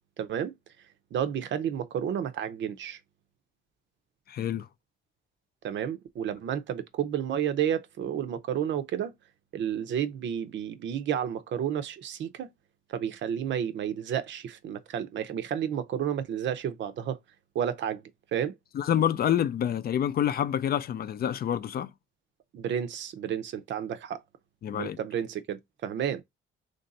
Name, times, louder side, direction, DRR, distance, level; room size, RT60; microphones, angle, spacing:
voice 1, 0.2-0.5 1.1-3.0 5.6-9.1 9.5-12.5 12.9-17.2 17.5-18.0 18.3-18.5 22.5-24.2 24.8-26.2, right 9 dB, 65° right, 0.6 m, -31 dB
voice 2, 4.3-4.7 18.7-21.9 24.6-25.0, left 10 dB, 50° left, 0.4 m, -27 dB
3.2 x 2.6 x 3.9 m
cardioid pair, 90°, 20 cm